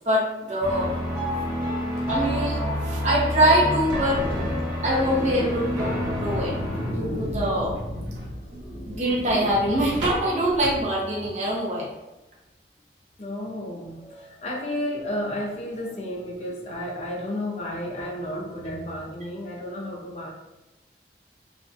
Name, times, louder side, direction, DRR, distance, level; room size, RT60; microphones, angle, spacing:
voice 1, 0.1-0.9 2.1-2.6 2.8-4.2 4.8-6.5 6.9-7.7 8.5-11.9, right 1 dB, 40° right, -3 dB, 0.6 m, -24 dB
sound 1, 0.6-6.9, left 1 dB, 15° right, 1.0 m, -28 dB
sound 2, 3.8-11.5, equal, 85° right, 0.8 m, -33 dB
voice 2, 8.4-9.0 13.2-20.3, left 1 dB, 40° left, -2 dB, 0.4 m, -32 dB
2.4 x 2.1 x 2.6 m, 1.0 s
head